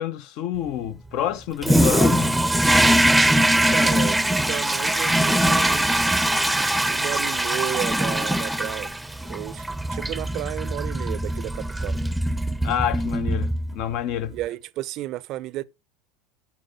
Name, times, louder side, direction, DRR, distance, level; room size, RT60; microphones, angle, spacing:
voice 1, 0.0-2.3 12.6-14.3, left 10 dB, 60° left, 0.6 m, -28 dB
Toilet flush, 1.6-13.9, right 1 dB, 5° right, 0.6 m, -22 dB
voice 2, 3.7-6.2 6.9-8.9 9.3-12.0 14.3-15.6, right 15 dB, 55° right, 0.5 m, -33 dB
7.6 x 5.7 x 4.5 m
hypercardioid pair, 85°, 0 cm